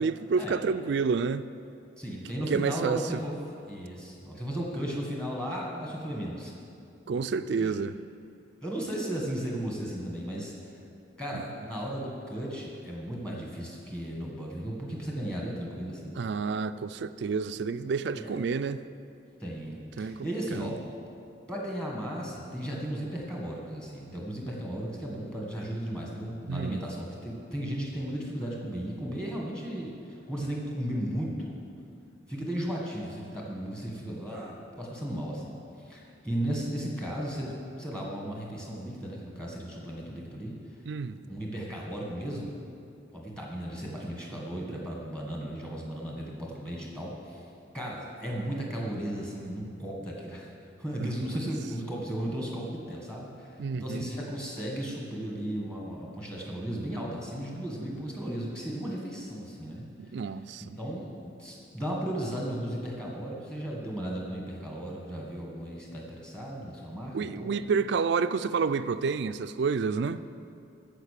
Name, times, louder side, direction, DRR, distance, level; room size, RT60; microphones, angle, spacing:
voice 1, 0.0-1.5 2.5-3.2 7.1-8.0 11.3-11.4 16.2-18.8 20.0-20.7 26.5-26.8 40.9-41.2 51.0-51.4 53.6-54.1 60.0-60.8 67.1-70.2, right 5 dB, 60° right, 12 dB, 0.3 m, -29 dB
voice 2, 2.0-3.3 3.6-6.5 7.6-7.7 8.6-10.7 11.2-16.2 18.1-18.3 19.4-20.8 21.5-31.5 32.3-40.6 41.3-42.5 43.1-47.4 47.7-50.5 50.8-53.5 53.8-59.8 60.8-67.6, right 1 dB, 5° left, -2 dB, 1.5 m, -35 dB
14.0 x 5.2 x 6.6 m, 2.5 s
head